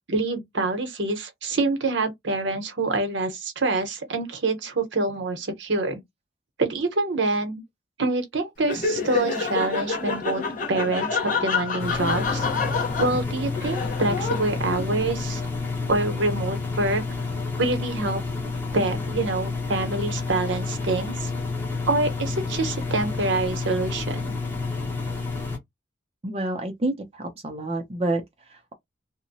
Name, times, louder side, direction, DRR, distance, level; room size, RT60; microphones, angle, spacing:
voice 1, 0.0-6.0 6.6-7.6 8.0-10.4 10.7-12.5 13.0-15.4 15.9-17.0 17.6-18.2 18.7-21.3 21.9-24.4, right 2 dB, 70° right, 0.8 m, -26 dB
Laughter, 8.6-15.2, left 4 dB, 40° left, 0.8 m, -28 dB
Engine, 11.8-25.6, left 4 dB, 10° left, 0.8 m, -30 dB
voice 2, 26.2-28.7, right 2 dB, 30° right, 0.5 m, -29 dB
2.8 x 2.1 x 2.6 m
head